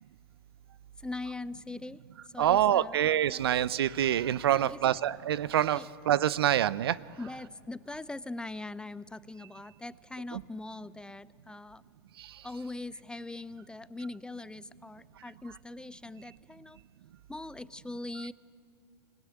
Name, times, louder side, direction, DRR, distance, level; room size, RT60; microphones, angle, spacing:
voice 1, 1.0-3.0 3.3-3.5 4.5-4.8 5.8-5.9 7.2-11.8 12.4-16.8 17.3-18.3, left 2 dB, 5° left, 17 dB, 0.5 m, -41 dB
voice 2, 2.4-7.0 10.3-10.4 12.2-12.3, right 11 dB, 75° right, 20 dB, 0.6 m, -26 dB
26.5 x 18.0 x 8.7 m, 2.4 s
hypercardioid pair, 100°, 13 cm